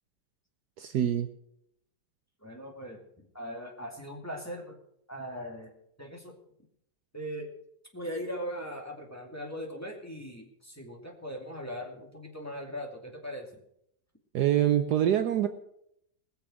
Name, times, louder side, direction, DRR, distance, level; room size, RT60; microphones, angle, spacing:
voice 1, 0.8-1.3 14.3-15.5, right 11 dB, 65° right, 9 dB, 1.2 m, -25 dB
voice 2, 2.4-4.7 5.1-5.7 6.0-6.4 7.1-7.5 7.9-13.6, equal, 10° left, 0 dB, 2.2 m, -39 dB
20.5 x 6.9 x 6.3 m, 0.75 s
omnidirectional pair, 2.0 m